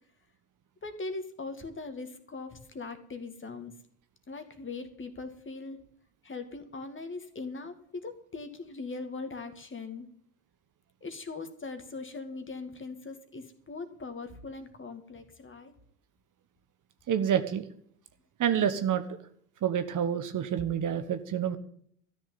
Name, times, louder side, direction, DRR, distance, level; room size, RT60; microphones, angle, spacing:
voice 1, 0.8-3.7 4.3-5.8 6.2-10.1 11.0-15.7, left 3 dB, 25° left, 9 dB, 2.2 m, -40 dB
voice 2, 17.1-17.7 18.4-19.0 19.6-21.6, right 9 dB, 40° right, 10 dB, 1.3 m, -28 dB
13.5 x 6.5 x 9.5 m, 0.63 s
figure-of-eight pair, 60°, 46 cm